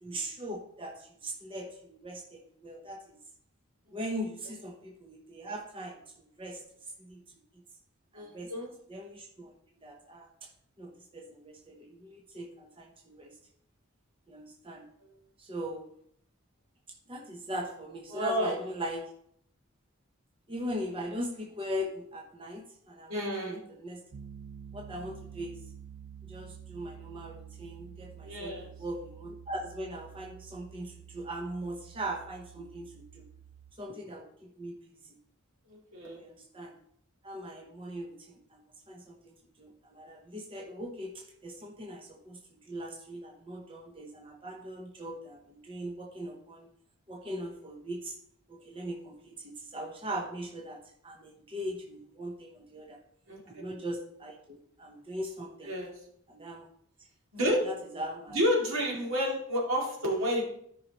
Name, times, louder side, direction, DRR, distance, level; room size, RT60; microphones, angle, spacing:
voice 1, 0.0-3.0 3.9-6.0 6.4-6.6 7.0-7.2 8.1-8.5 8.9-9.5 9.8-10.5 10.8-13.4 14.3-14.9 15.4-15.9 17.1-19.1 20.5-24.0 24.7-25.6 26.2-33.2 33.8-34.8 36.1-36.7 37.2-46.7 47.1-48.2 48.5-53.0 53.5-55.7 56.3-56.7 57.5-58.4, equal, 25° right, 1 dB, 0.8 m, -40 dB
voice 2, 8.1-8.7 18.1-18.6 23.1-23.6 28.2-28.7 35.7-36.2 53.3-53.4 55.6-55.9 57.3-57.6 58.3-60.4, equal, 75° right, -2 dB, 2.4 m, -30 dB
Piano, 24.1-33.7, right 8 dB, 50° right, 0.3 m, -49 dB
13.0 x 5.5 x 3.0 m, 0.70 s
head